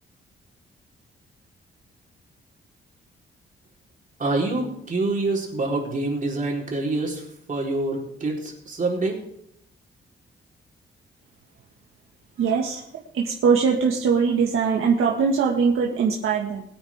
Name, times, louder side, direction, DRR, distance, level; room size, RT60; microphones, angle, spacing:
voice 1, 4.2-7.2 7.5-9.2, right 2 dB, 40° right, -1 dB, 4.3 m, -26 dB
voice 2, 12.4-12.8 13.1-16.6, right 5 dB, 85° right, -1 dB, 1.9 m, -21 dB
22.5 x 8.8 x 3.7 m, 0.74 s
cardioid pair, 105°, 21 cm